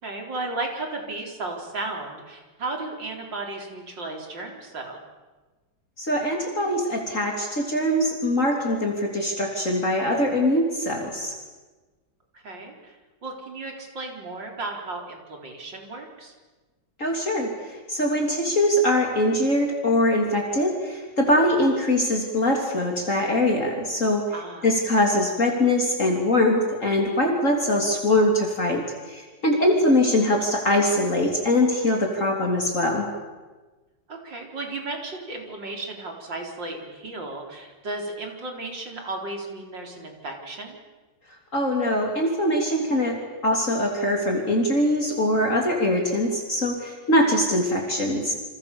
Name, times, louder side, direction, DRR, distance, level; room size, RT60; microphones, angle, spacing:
voice 1, 0.0-5.0 12.3-13.0 13.2-16.3 24.3-24.7 29.6-29.7 34.1-40.8, right 2 dB, 80° right, 2 dB, 5.0 m, -34 dB
voice 2, 6.0-11.3 17.0-24.2 24.6-33.1 41.5-43.2 43.4-48.3, left 1 dB, 45° left, 1 dB, 3.6 m, -22 dB
29.5 x 26.5 x 7.1 m, 1.3 s
omnidirectional pair, 2.0 m